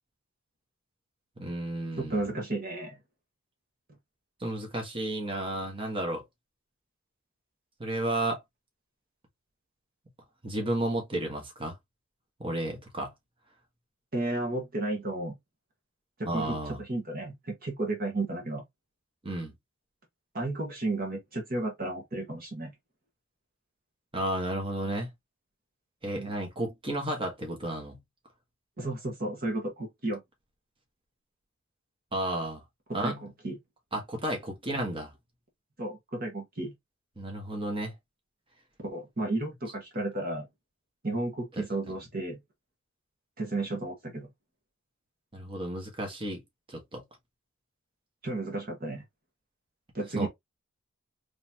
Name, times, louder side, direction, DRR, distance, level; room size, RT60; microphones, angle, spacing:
voice 1, 1.4-2.2 4.4-6.2 7.8-8.4 10.4-11.8 12.4-13.1 16.3-16.8 19.2-19.5 24.1-25.1 26.0-28.0 32.1-32.6 32.9-33.2 33.9-35.1 37.2-37.9 41.6-41.7 45.3-46.4 46.7-47.0 50.1-50.3, right 1 dB, 25° right, 1.5 m, -32 dB
voice 2, 2.0-3.0 14.1-15.3 16.2-18.6 20.3-22.7 26.1-26.3 28.8-30.2 33.0-33.6 35.8-36.7 38.8-40.5 41.0-42.4 43.4-44.3 48.2-49.0 49.9-50.3, right 2 dB, 45° right, 1.5 m, -33 dB
4.0 x 3.4 x 2.8 m
head